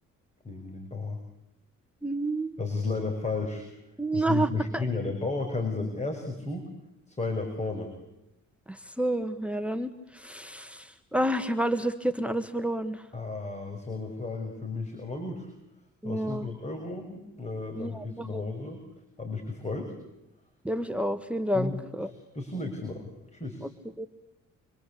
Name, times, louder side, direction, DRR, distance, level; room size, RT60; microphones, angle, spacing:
voice 1, 0.4-1.2 2.6-3.7 4.1-6.6 7.1-7.9 13.1-15.5 16.0-18.8 19.2-19.9 21.5-21.7 22.3-23.7, left 3 dB, 20° left, 4 dB, 6.1 m, -33 dB
voice 2, 2.0-2.5 4.0-4.8 8.7-13.0 16.0-16.5 17.8-18.4 20.6-22.1 23.6-23.7 24.0-24.1, right 1 dB, 5° right, 10 dB, 1.6 m, -29 dB
27.5 x 25.0 x 8.5 m, 0.89 s
cardioid pair, 90°, 30 cm